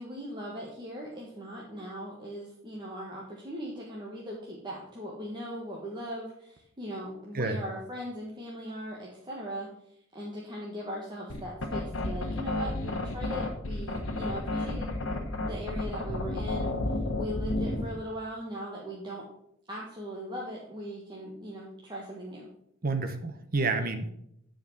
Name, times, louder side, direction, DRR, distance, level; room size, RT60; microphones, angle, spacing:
voice 1, 0.0-9.7 10.1-19.3 19.7-22.5, equal, 20° right, -4 dB, 1.5 m, -39 dB
sound 1, 11.3-17.9, left 2 dB, 70° left, 1.4 m, -32 dB
voice 2, 22.8-24.1, right 3 dB, 45° right, 8 dB, 1.0 m, -29 dB
9.8 x 5.1 x 5.8 m, 0.74 s
head